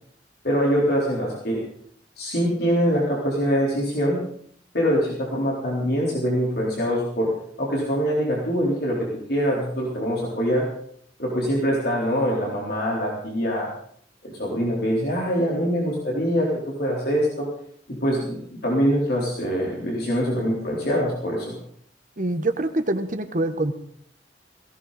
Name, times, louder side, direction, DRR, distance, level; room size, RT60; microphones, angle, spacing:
voice 1, 0.4-1.6 2.2-4.2 4.7-7.3 7.6-10.7 11.2-13.7 14.2-17.5 17.9-21.5, equal, 60° left, -3 dB, 4.0 m, -24 dB
voice 2, 22.2-23.7, right 2 dB, 45° right, 9 dB, 1.2 m, -25 dB
18.0 x 16.5 x 4.2 m, 0.62 s
head